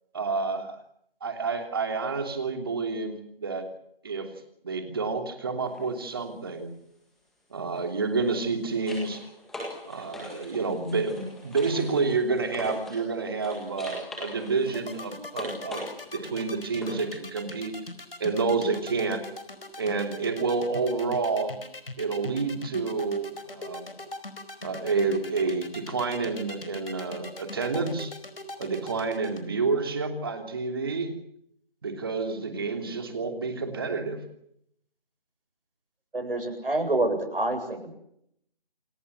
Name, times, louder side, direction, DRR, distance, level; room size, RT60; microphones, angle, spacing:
voice 1, 0.1-0.8 1.2-3.7 4.0-4.3 4.6-6.7 7.5-9.2 9.8-15.8 16.1-17.7 18.2-19.2 19.8-21.6 22.0-23.9 24.6-28.1 28.6-31.1 31.8-34.2, right 4 dB, 25° right, 6 dB, 3.1 m, -29 dB
sound 1, 5.6-5.8 8.1-13.1 13.4-17.1 19.8-19.9, left 1 dB, ahead, 1.8 m, -41 dB
sound 2, 14.7-29.4, left 2 dB, 75° left, 4.7 m, -40 dB
voice 2, 36.1-37.9, right 2 dB, 70° right, 7 dB, 7.8 m, -27 dB
28.5 x 17.5 x 8.2 m, 0.72 s
figure-of-eight pair, 170°, 29 cm